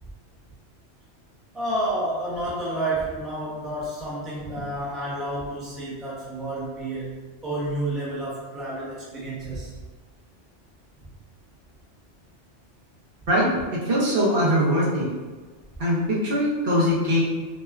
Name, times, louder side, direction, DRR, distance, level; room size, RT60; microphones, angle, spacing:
voice 1, 1.5-7.2 7.4-9.7, right 1 dB, ahead, -7 dB, 0.3 m, -30 dB
voice 2, 13.3-15.1 15.8-17.2, equal, 55° right, -7 dB, 0.9 m, -22 dB
2.9 x 2.2 x 2.3 m, 1.3 s
omnidirectional pair, 1.2 m